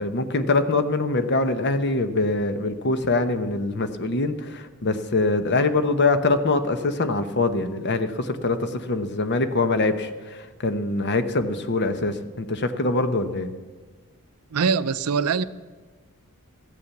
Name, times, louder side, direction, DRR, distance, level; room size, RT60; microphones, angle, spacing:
voice 1, 0.0-13.5, left 3 dB, 50° left, 0.9 m, -24 dB
voice 2, 14.5-15.4, right 5 dB, 75° right, 0.5 m, -22 dB
14.0 x 8.6 x 7.1 m
head